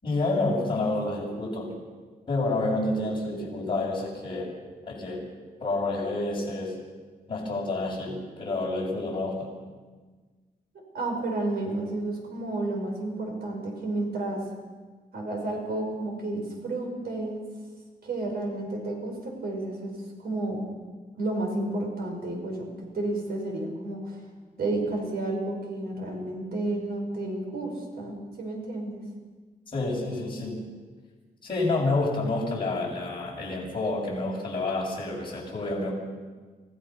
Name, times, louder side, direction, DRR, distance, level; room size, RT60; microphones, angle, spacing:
voice 1, 0.0-1.8 2.3-4.5 4.9-5.3 5.6-6.8 7.3-9.5 29.7-30.7 31.4-35.9, left 2 dB, 30° left, -4 dB, 6.9 m, -29 dB
voice 2, 10.9-14.4 15.1-17.4 18.0-19.9 20.2-20.7 21.2-22.7 22.9-24.2 24.6-29.0, right 2 dB, 90° right, 1 dB, 5.5 m, -31 dB
28.0 x 17.0 x 5.9 m, 1.4 s
wide cardioid pair, 180°, 16 cm